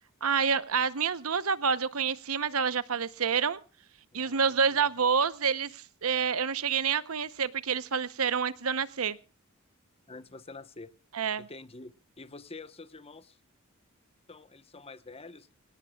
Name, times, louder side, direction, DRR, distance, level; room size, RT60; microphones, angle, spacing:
voice 1, 0.2-3.6 4.1-9.2 11.1-11.5, right 6 dB, 80° right, 0.9 m, -28 dB
voice 2, 4.1-4.8 10.1-10.9 11.4-13.4 14.3-15.5, left 3 dB, 30° left, 1.0 m, -47 dB
26.0 x 18.0 x 2.3 m
head